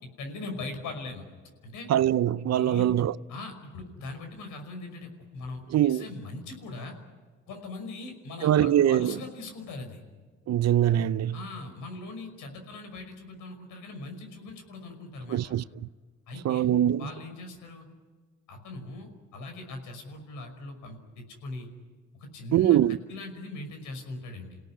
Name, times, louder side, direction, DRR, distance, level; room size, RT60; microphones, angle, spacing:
voice 1, 0.2-1.3 1.6-1.9 2.5-2.9 3.3-7.0 7.5-10.0 11.3-15.5 16.3-16.7 17.0-17.9 18.5-21.7 22.1-22.8 23.1-24.6, left 2 dB, 90° left, 5.6 m, -40 dB
voice 2, 1.9-3.1 5.7-6.0 8.4-9.1 10.5-11.4 15.3-15.6 16.4-17.1 22.5-23.0, right 11 dB, 60° right, 0.7 m, -23 dB
29.5 x 17.5 x 9.9 m
cardioid pair, 90°, 30 cm